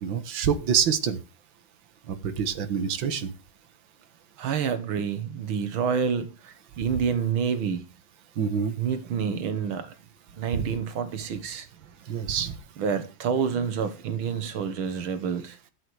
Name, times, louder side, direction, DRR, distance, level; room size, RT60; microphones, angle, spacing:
voice 1, 0.0-1.2 2.1-3.3 8.4-8.7 10.5-10.6 12.1-12.6, right 7 dB, 70° right, 2.1 m, -26 dB
voice 2, 4.4-7.9 8.8-9.9 10.4-11.7 12.8-15.6, right 7 dB, 90° right, 2.1 m, -28 dB
13.0 x 8.3 x 4.8 m
omnidirectional pair, 2.2 m